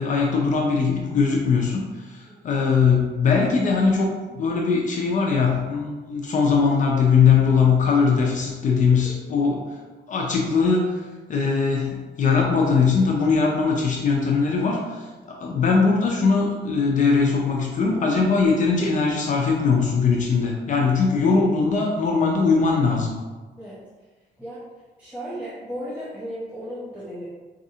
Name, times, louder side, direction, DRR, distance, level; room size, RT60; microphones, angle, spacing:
voice 1, 0.0-9.7 10.1-11.0 11.3-23.1, left 5 dB, 45° left, -1 dB, 0.4 m, -21 dB
voice 2, 25.0-27.3, equal, 10° right, -10 dB, 0.6 m, -35 dB
4.0 x 2.5 x 2.7 m, 1.3 s
cardioid pair, 170°, 18 cm